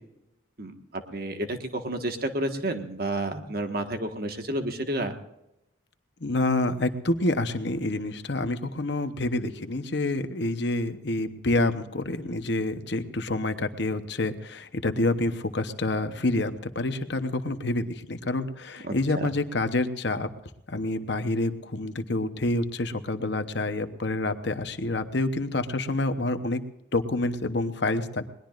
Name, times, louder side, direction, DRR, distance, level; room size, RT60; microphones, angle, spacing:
voice 1, 0.6-5.1 18.8-19.3, right 1 dB, 50° right, 5 dB, 1.6 m, -31 dB
voice 2, 6.2-20.3 20.7-26.6 26.9-28.3, left 2 dB, 60° left, 9 dB, 1.0 m, -28 dB
21.0 x 20.0 x 2.6 m, 0.85 s
head